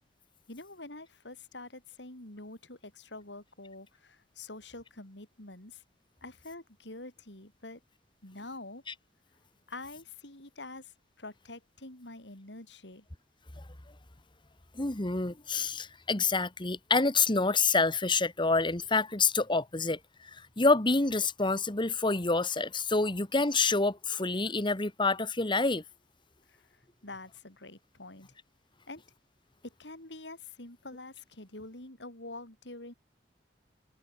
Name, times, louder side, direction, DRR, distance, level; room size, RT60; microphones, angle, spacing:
voice 1, 0.5-5.8 6.2-7.8 8.2-8.8 9.7-13.1 26.5-28.3 28.9-29.0 29.6-32.9, left 2 dB, 80° left, 5.6 m, -46 dB
voice 2, 14.7-20.0 20.3-25.8, left 3 dB, 25° left, 1.6 m, -27 dB
head